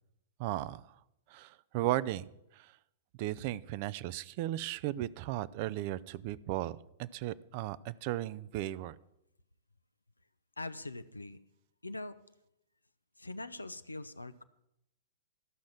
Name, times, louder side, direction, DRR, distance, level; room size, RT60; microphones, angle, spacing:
voice 1, 0.4-0.8 1.3-2.7 3.2-9.0, right 15 dB, 45° right, 18 dB, 0.5 m, -36 dB
voice 2, 10.6-11.4 11.8-12.2 13.2-14.4, left 2 dB, 90° left, 11 dB, 0.6 m, -42 dB
13.5 x 6.3 x 7.4 m, 0.83 s
figure-of-eight pair, 105°, 0 cm